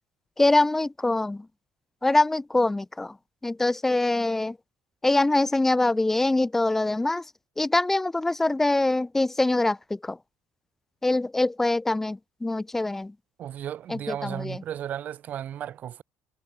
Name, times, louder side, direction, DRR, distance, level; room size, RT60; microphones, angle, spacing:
voice 1, 0.4-1.4 2.0-3.1 3.4-4.6 5.0-7.2 7.6-10.2 11.0-13.1 13.9-14.6, left 2 dB, 5° left, 0.9 m, -24 dB
voice 2, 13.4-16.0, right 10 dB, 35° right, 7.2 m, -34 dB
cardioid pair, 180°, 5 cm